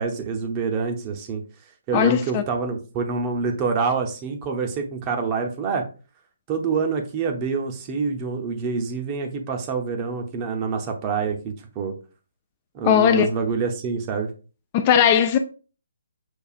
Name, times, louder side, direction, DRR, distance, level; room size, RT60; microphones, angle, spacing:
voice 1, 0.0-1.4 1.9-5.8 6.5-11.9 12.7-14.3, right 5 dB, 25° right, 0.7 m, -26 dB
voice 2, 1.9-2.4 12.8-13.3 14.7-15.4, left 9 dB, 30° left, 0.3 m, -18 dB
6.3 x 2.4 x 2.4 m
figure-of-eight pair, 140°, 0 cm